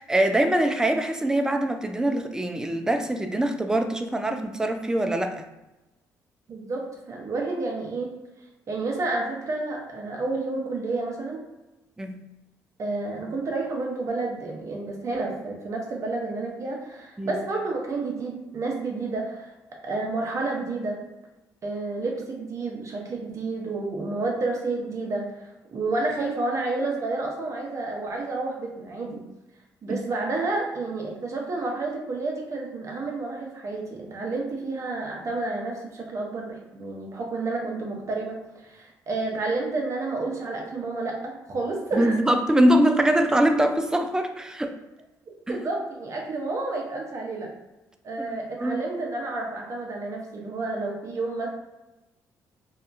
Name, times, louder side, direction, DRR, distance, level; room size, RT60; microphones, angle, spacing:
voice 1, 0.0-5.5 12.0-12.2 17.2-17.4 29.9-30.0 41.9-44.7 45.5-45.6 48.2-48.8, right 1 dB, 10° right, 6 dB, 0.3 m, -23 dB
voice 2, 6.5-8.1 8.7-11.5 12.8-19.5 19.8-21.0 21.6-29.2 29.8-42.2 45.5-47.5 48.0-51.5, right 3 dB, 45° right, 0 dB, 0.7 m, -30 dB
2.7 x 2.3 x 2.5 m, 0.99 s
supercardioid pair, 75°, 7 cm